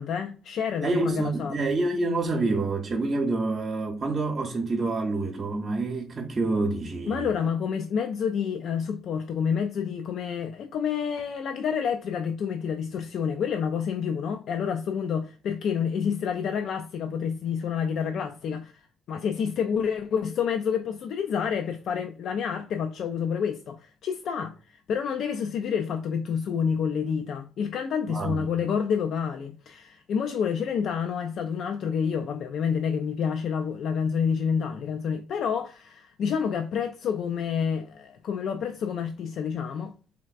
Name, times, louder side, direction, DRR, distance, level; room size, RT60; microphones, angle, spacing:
voice 1, 0.0-1.6 7.1-18.7 19.1-39.9, left 7 dB, 70° left, 0.3 m, -28 dB
voice 2, 0.8-7.3 28.1-28.4, right 3 dB, 45° right, 0.7 m, -27 dB
3.4 x 3.2 x 2.4 m
supercardioid pair, 55°, 0 cm